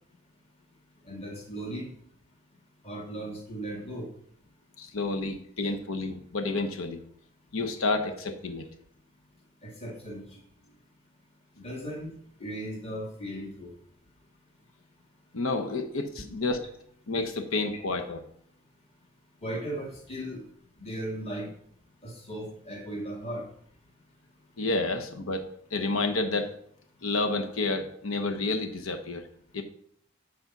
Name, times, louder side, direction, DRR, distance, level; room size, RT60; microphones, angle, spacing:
voice 1, 1.0-1.9 2.8-4.1 9.6-10.2 11.6-12.1 12.4-13.7 19.4-20.4 20.8-21.5 22.0-23.5, right 1 dB, 30° left, 0 dB, 2.1 m, -37 dB
voice 2, 4.8-7.0 7.5-8.7 15.3-16.6 17.1-18.2 24.6-26.6 27.0-29.3 29.5-29.6, left 3 dB, 90° left, 5 dB, 0.9 m, -30 dB
8.2 x 5.0 x 5.9 m, 0.64 s
head